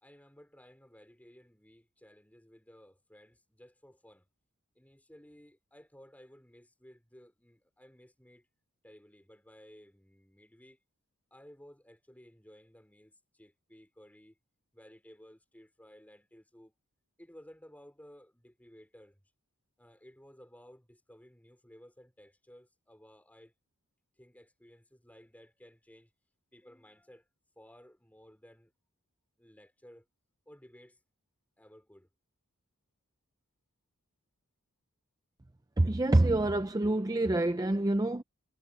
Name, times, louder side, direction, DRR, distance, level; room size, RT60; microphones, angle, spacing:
voice 1, 0.0-4.3 4.7-8.5 8.8-10.8 11.3-14.4 14.7-16.7 17.2-19.2 19.8-23.5 24.2-26.1 26.5-27.3 27.5-28.7 29.4-30.1 30.4-31.0 31.6-32.1, equal, 5° left, 3.4 m, -57 dB
voice 2, 35.8-38.2, right 2 dB, 15° right, 0.5 m, -26 dB
head